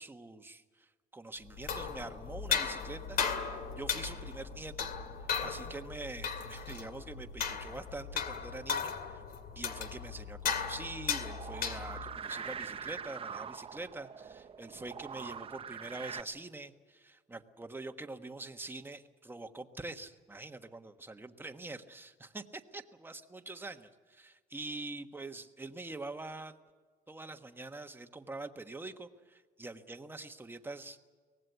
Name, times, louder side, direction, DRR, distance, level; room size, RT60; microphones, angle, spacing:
voice 1, 0.0-3.2 3.5-4.9 5.4-9.2 9.5-22.4 22.7-26.6 27.1-31.0, right 2 dB, 10° right, 7 dB, 1.3 m, -45 dB
sound 1, 1.5-12.2, left 6 dB, 60° left, 2.4 m, -36 dB
sound 2, 11.2-16.2, right 7 dB, 35° right, 0.8 m, -43 dB
24.0 x 18.5 x 8.2 m, 1.5 s
cardioid pair, 110°, 17 cm